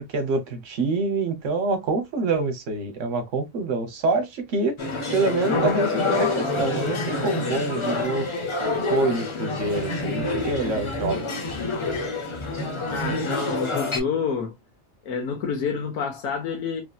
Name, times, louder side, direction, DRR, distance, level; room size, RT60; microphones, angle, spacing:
voice 1, 0.1-4.8 5.1-8.3 8.9-11.2, right 3 dB, 65° right, 1.1 m, -26 dB
sound 1, 4.8-14.0, left 2 dB, 40° left, 0.4 m, -27 dB
voice 2, 12.9-14.5 15.0-16.8, left 6 dB, 80° left, 1.2 m, -28 dB
3.2 x 2.7 x 2.3 m
omnidirectional pair, 1.4 m